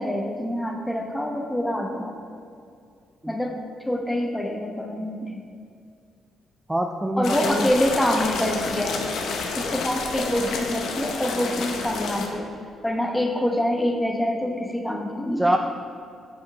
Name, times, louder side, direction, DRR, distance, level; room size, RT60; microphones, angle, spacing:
voice 1, 0.0-2.2 3.3-3.6 3.9-5.4 7.2-9.0 9.6-12.5 12.8-15.5, left 1 dB, 10° left, 2 dB, 1.0 m, -26 dB
voice 2, 6.7-7.7 15.4-15.6, right 1 dB, 10° right, 4 dB, 0.4 m, -24 dB
sound 1, 7.2-12.3, left 4 dB, 75° left, 0.9 m, -29 dB
9.6 x 5.7 x 3.3 m, 2.4 s
cardioid pair, 90°, 0 cm